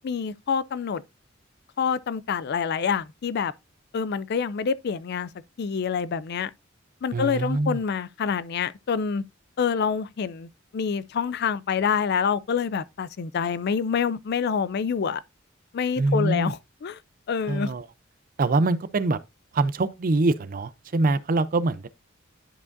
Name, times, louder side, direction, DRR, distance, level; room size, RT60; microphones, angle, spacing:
voice 1, 0.0-1.0 1.8-3.5 3.9-5.3 5.6-6.5 7.0-9.2 9.6-15.2 15.7-17.0 17.3-17.7, left 6 dB, 55° left, 0.4 m, -27 dB
voice 2, 7.1-7.8 16.0-16.5 17.5-17.9 18.4-19.2 19.5-21.9, right 2 dB, 45° right, 0.5 m, -24 dB
11.0 x 4.9 x 2.6 m
head